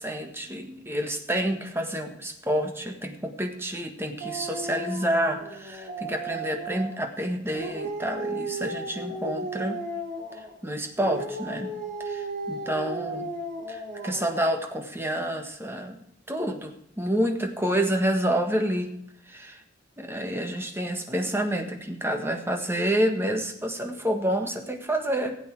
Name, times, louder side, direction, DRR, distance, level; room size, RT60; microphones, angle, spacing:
voice 1, 0.0-9.8 10.4-11.7 12.0-13.3 13.7-16.0 16.3-18.9 19.3-19.6 20.0-25.4, right 1 dB, 15° right, 4 dB, 1.5 m, -28 dB
Dog, 4.2-7.0 7.5-10.6 11.0-14.5, right 2 dB, 50° right, 3.4 m, -35 dB
16.0 x 8.3 x 4.7 m, 0.76 s
head